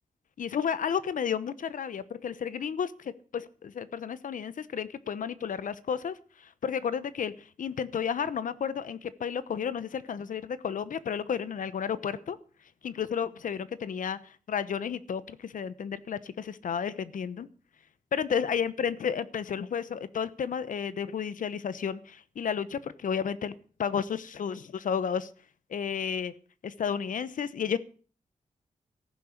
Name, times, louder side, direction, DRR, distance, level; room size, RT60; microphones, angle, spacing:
voice 1, 0.4-12.4 12.8-17.5 18.1-25.3 25.7-26.3 26.6-27.8, left 7 dB, 75° left, 15 dB, 1.0 m, -32 dB
14.5 x 11.0 x 6.6 m, 0.42 s
wide cardioid pair, 145°, 14 cm